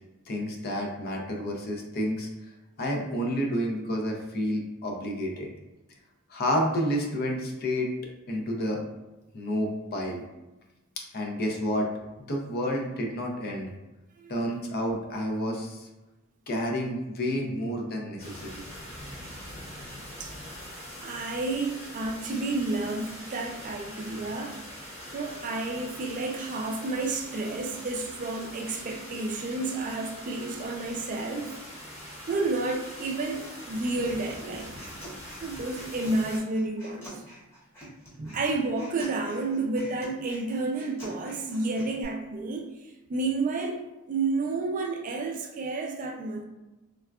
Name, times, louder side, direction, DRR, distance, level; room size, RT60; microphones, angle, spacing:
voice 1, 0.3-2.3 2.8-5.5 6.3-7.9 8.3-8.8 9.3-10.2 11.1-11.9 12.2-13.7 14.3-15.9 16.5-18.6, equal, 50° left, 1 dB, 0.5 m, -30 dB
sound 1, 18.2-36.4, equal, 30° left, 1.1 m, -43 dB
voice 2, 21.0-24.6 25.1-31.6 32.3-34.8 35.4-37.2 38.2-46.4, right 3 dB, 40° right, 3 dB, 0.3 m, -31 dB
Human voice, 34.0-42.0, equal, 10° left, 0.9 m, -47 dB
3.5 x 2.3 x 2.3 m, 1.0 s
head